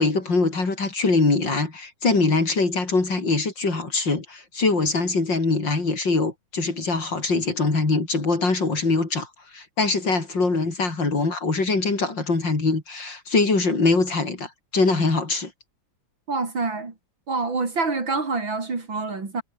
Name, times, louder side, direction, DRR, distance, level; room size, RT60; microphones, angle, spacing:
voice 1, 0.0-9.3 9.5-15.5, left 3 dB, 65° left, 5.6 m, -23 dB
voice 2, 16.3-16.9 17.3-19.4, right 3 dB, 70° right, 4.8 m, -26 dB
omnidirectional pair, 2.2 m